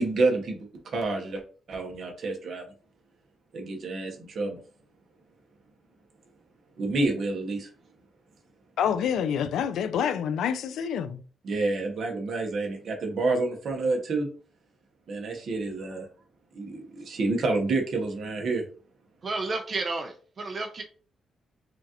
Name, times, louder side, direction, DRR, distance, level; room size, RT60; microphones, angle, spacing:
voice 1, 0.0-1.4 1.7-2.6 3.5-4.6 6.8-7.7 11.4-14.3 15.1-16.1 16.5-18.6, right 3 dB, 55° right, 1.0 m, -28 dB
voice 2, 8.8-11.2, left 8 dB, 85° left, 0.4 m, -27 dB
voice 3, 19.2-20.8, right 3 dB, 35° right, 0.6 m, -31 dB
4.9 x 2.5 x 2.9 m
cardioid pair, 145°, 0 cm